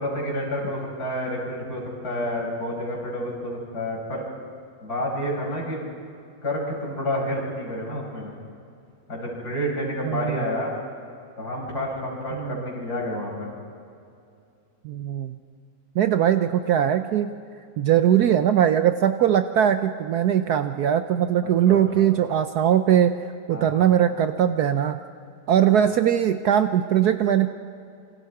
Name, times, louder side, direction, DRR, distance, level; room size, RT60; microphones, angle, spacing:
voice 1, 0.0-4.2 4.8-5.8 6.4-8.3 9.1-10.7 11.4-13.5 21.4-22.1 23.5-23.9, equal, 55° left, -3 dB, 6.5 m, -29 dB
voice 2, 10.0-10.4 12.4-12.6 14.8-15.4 16.0-17.3 17.8-23.2 23.5-25.0 25.5-27.5, right 10 dB, 65° right, 9 dB, 1.0 m, -20 dB
27.5 x 25.0 x 4.8 m, 2.5 s
omnidirectional pair, 2.1 m